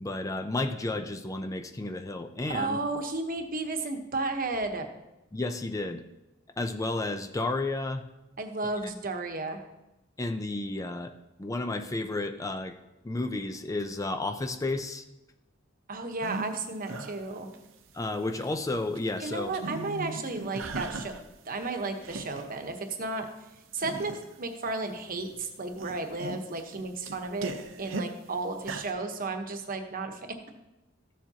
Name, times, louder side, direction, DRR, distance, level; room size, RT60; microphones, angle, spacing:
voice 1, 0.0-2.8 5.3-6.0 6.6-8.0 10.2-11.1 11.4-12.8 13.0-15.1 17.9-19.5, left 2 dB, 15° left, 7 dB, 0.4 m, -32 dB
voice 2, 2.5-4.9 8.4-9.6 15.9-17.5 19.2-21.1 21.5-23.3 23.7-24.1 24.4-27.5 27.8-30.2, right 3 dB, 45° right, 5 dB, 1.0 m, -33 dB
sound 1, 16.2-16.6 16.9-17.9 18.3-19.0 19.3-21.3 21.6-22.5 23.0-23.1 23.7-24.3 25.0-25.4 25.6-28.1 28.6-28.9, right 3 dB, 75° right, 0.8 m, -38 dB
14.0 x 7.2 x 2.8 m, 0.96 s
head